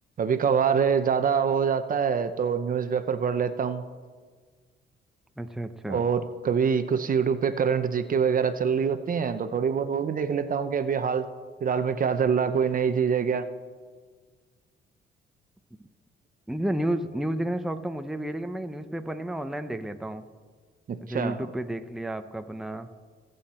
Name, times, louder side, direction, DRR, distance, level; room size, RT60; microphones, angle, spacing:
voice 1, 0.2-3.8 5.9-11.3 11.6-13.5 20.9-21.4, right 6 dB, 45° right, 10 dB, 0.8 m, -25 dB
voice 2, 5.4-6.0 16.5-20.2 21.0-22.9, right 1 dB, ahead, 8 dB, 0.7 m, -31 dB
23.0 x 8.0 x 4.3 m, 1.5 s
cardioid pair, 90°, 20 cm